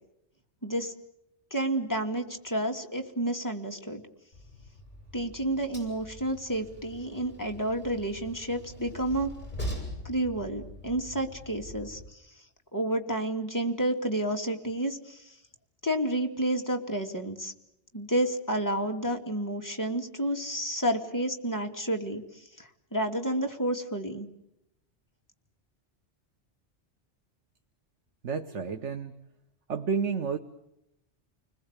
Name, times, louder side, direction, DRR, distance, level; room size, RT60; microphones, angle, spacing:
voice 1, 0.6-0.9 1.5-4.0 5.1-9.3 10.0-12.2 12.7-15.3 15.8-17.5 17.9-24.3, right 1 dB, 15° left, 2 dB, 2.5 m, -30 dB
Train, 4.3-12.1, equal, 40° left, 7.2 m, -42 dB
voice 2, 28.2-29.2 29.7-30.4, right 5 dB, 85° right, 6 dB, 1.5 m, -30 dB
29.5 x 21.0 x 8.2 m, 0.84 s
omnidirectional pair, 1.2 m